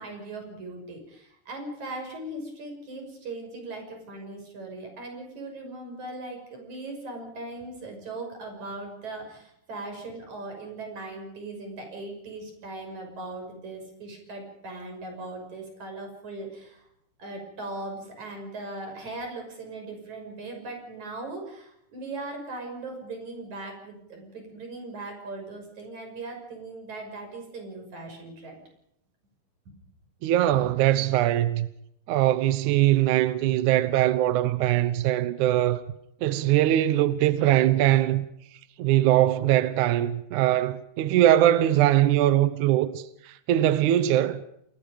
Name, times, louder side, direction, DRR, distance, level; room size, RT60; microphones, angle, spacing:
voice 1, 0.0-16.8 17.2-28.6 29.7-29.8 30.5-30.6, right 2 dB, 45° right, 7.3 m, -39 dB
voice 2, 30.2-31.7 32.1-35.8 36.2-38.3 38.8-44.4, right 13 dB, 80° right, 1.8 m, -22 dB
28.5 x 20.0 x 5.2 m
omnidirectional pair, 4.8 m